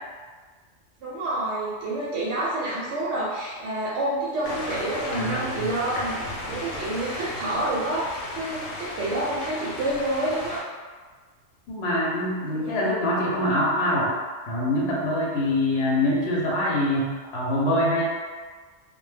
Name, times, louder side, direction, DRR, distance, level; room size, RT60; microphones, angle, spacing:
voice 1, 1.0-6.2 6.5-10.6 12.5-12.9, right 1 dB, 70° right, -7 dB, 0.8 m, -28 dB
sound 1, 4.4-10.6, left 1 dB, 85° left, 1.0 m, -34 dB
voice 2, 5.2-5.7 11.7-14.1 14.5-18.0, left 1 dB, 60° left, -4 dB, 0.8 m, -24 dB
2.2 x 2.1 x 3.2 m, 1.5 s
omnidirectional pair, 1.3 m